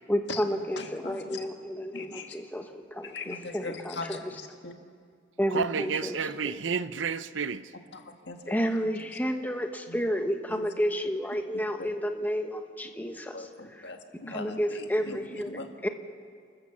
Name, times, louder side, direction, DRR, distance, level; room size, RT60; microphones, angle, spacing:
voice 1, 0.1-4.3 5.4-6.6 8.5-13.9 14.3-15.9, equal, 10° left, 1.1 m, -31 dB
voice 2, 0.8-1.4 1.9-2.4 3.0-4.7 5.5-6.0 7.9-8.7 9.9-10.0 10.5-10.6 11.8-11.9 13.3-15.7, left 3 dB, 65° left, 1.8 m, -41 dB
voice 3, 5.5-7.6, right 6 dB, 85° right, 0.7 m, -30 dB
29.5 x 13.5 x 7.2 m
head